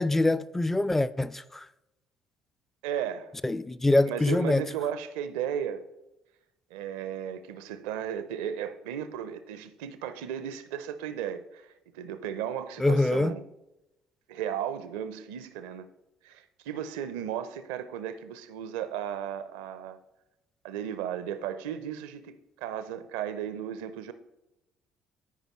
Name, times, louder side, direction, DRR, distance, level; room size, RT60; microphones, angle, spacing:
voice 1, 0.0-1.6 3.4-4.6 12.8-13.3, left 2 dB, 10° left, 0.4 m, -24 dB
voice 2, 2.8-3.3 4.0-5.8 6.7-13.4 14.3-15.9 16.2-20.0 20.6-24.1, right 9 dB, 70° right, 0.5 m, -35 dB
13.0 x 5.2 x 3.1 m
figure-of-eight pair, 50°, 3 cm